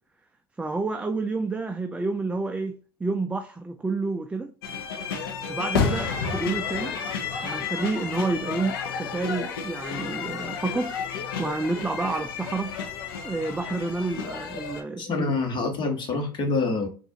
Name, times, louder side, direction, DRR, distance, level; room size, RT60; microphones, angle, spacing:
voice 1, 0.6-4.5 5.5-6.9 7.4-10.9 11.4-12.7 13.2-15.3, right 3 dB, 10° right, 0.3 m, -29 dB
sound 1, 4.6-14.8, left 6 dB, 70° left, 0.7 m, -31 dB
voice 2, 15.0-16.9, left 3 dB, 40° left, 1.3 m, -26 dB
4.1 x 2.5 x 2.8 m
hypercardioid pair, 75°, 12 cm